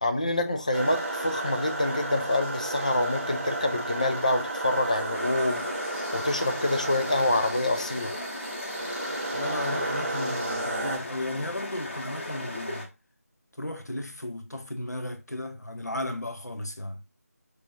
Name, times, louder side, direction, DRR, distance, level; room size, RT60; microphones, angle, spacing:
voice 1, 0.0-5.7 6.1-8.1, left 1 dB, 25° left, 0.4 m, -26 dB
sound 1, 0.7-11.0, right 1 dB, 40° right, 1.6 m, -33 dB
sound 2, 5.1-12.9, left 1 dB, 45° left, 1.5 m, -37 dB
voice 2, 9.3-12.8 13.6-17.0, left 1 dB, 90° left, 0.8 m, -34 dB
5.5 x 3.0 x 2.9 m
figure-of-eight pair, 165°, 9 cm